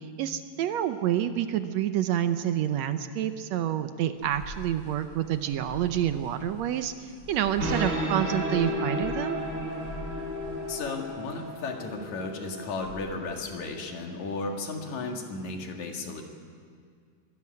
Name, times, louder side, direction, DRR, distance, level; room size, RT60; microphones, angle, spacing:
voice 1, 0.2-6.9 7.3-9.4, right 11 dB, 75° right, 10 dB, 1.9 m, -28 dB
sound 1, 4.2-12.9, equal, 50° left, 5.8 m, -44 dB
sound 2, 7.3-14.5, equal, 45° right, 5.5 m, -34 dB
voice 2, 10.7-16.2, left 3 dB, 75° left, 2 dB, 3.3 m, -34 dB
22.5 x 13.0 x 9.6 m, 2.1 s
omnidirectional pair, 3.4 m